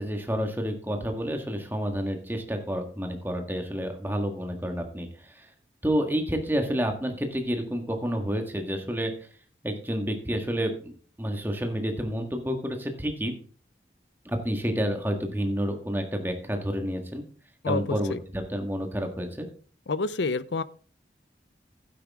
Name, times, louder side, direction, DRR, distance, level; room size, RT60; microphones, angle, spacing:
voice 1, 0.0-5.5 5.8-9.1 9.6-13.3 14.2-17.2 17.7-19.5, equal, 10° right, 4 dB, 1.7 m, -29 dB
voice 2, 17.6-18.2 19.9-20.6, left 3 dB, 80° left, 16 dB, 0.6 m, -28 dB
11.5 x 9.8 x 3.6 m, 0.41 s
head